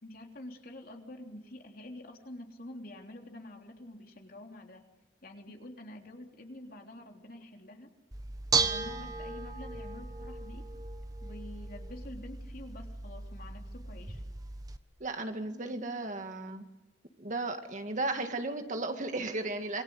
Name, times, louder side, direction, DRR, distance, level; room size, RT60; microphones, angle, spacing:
voice 1, 0.0-4.8 5.2-7.9 8.5-10.7 11.2-14.2, left 1 dB, 50° left, 2 dB, 3.5 m, -47 dB
Bell / Dishes pots and pans, 8.1-14.8, right 4 dB, 20° right, 1.2 m, -36 dB
voice 2, 15.0-16.7 17.2-19.8, right 2 dB, 45° right, 6 dB, 2.0 m, -35 dB
27.0 x 23.5 x 8.1 m, 0.98 s
head